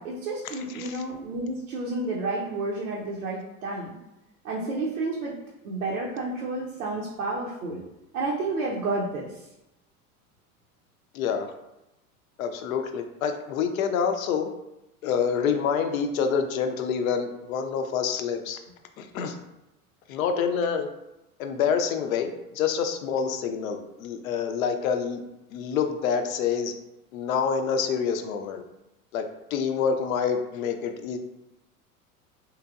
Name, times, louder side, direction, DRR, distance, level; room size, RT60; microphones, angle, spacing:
voice 1, 0.0-4.0 4.4-5.3 5.6-7.8 8.1-9.4, right 2 dB, 75° right, -3 dB, 0.7 m, -30 dB
voice 2, 11.1-11.5 12.4-14.5 15.0-18.6 19.0-19.3 20.1-20.9 21.4-25.2 25.5-26.7 27.1-28.6 29.1-29.2 29.5-31.2, left 6 dB, 65° left, 6 dB, 0.5 m, -27 dB
3.2 x 2.9 x 2.3 m, 0.92 s
figure-of-eight pair, 85°, 44 cm